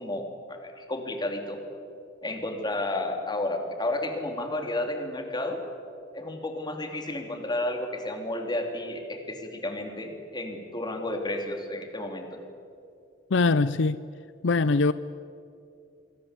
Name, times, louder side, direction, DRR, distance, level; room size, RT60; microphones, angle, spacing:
voice 1, 0.0-1.6 2.2-5.6 6.1-12.4, left 1 dB, 25° left, 4 dB, 3.3 m, -32 dB
voice 2, 13.3-14.0 14.4-14.9, left 3 dB, 70° left, 15 dB, 0.6 m, -22 dB
26.5 x 23.5 x 8.4 m, 2.5 s
head